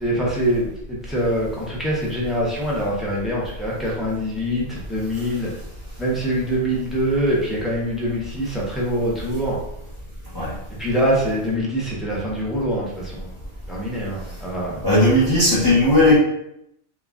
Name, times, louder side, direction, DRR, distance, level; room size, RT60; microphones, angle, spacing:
voice 1, 0.0-5.5 6.0-9.6 10.8-13.3 13.7-14.8, equal, ahead, -5 dB, 0.4 m, -24 dB
voice 2, 14.8-16.2, left 1 dB, 20° left, -9 dB, 0.7 m, -16 dB
2.3 x 2.1 x 3.5 m, 0.78 s
omnidirectional pair, 1.2 m